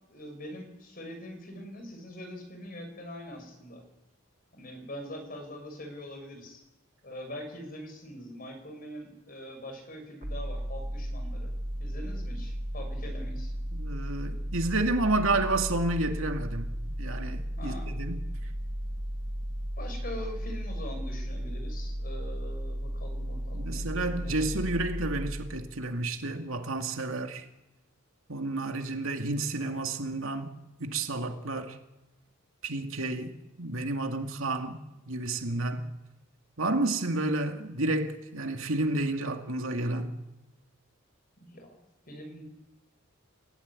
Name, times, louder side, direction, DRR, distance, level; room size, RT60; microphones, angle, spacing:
voice 1, 0.1-3.8 4.5-6.6 7.0-11.5 11.8-13.5 17.6-18.0 19.8-24.7 41.4-41.8 42.1-42.4, equal, 40° left, 6.0 m, -43 dB
sound 1, 10.2-26.0, equal, 35° right, 2.0 m, -35 dB
voice 2, 13.7-18.2 23.5-27.4 28.3-30.5 30.8-31.8 32.6-34.8 35.1-35.9 36.6-40.1, right 2 dB, 70° right, 2.4 m, -30 dB
29.5 x 16.5 x 9.8 m
head